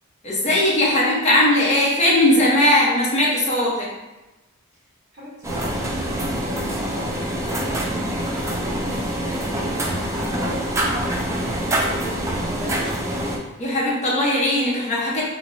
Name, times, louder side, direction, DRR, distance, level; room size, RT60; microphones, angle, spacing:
voice 1, 0.2-3.9 13.6-15.2, left 1 dB, 30° left, -5 dB, 0.9 m, -19 dB
voice 2, 5.1-13.3, equal, 50° right, -13 dB, 1.3 m, -37 dB
sound 1, 5.4-13.4, right 1 dB, 15° right, 0.4 m, -25 dB
2.9 x 2.9 x 2.6 m, 1.0 s
head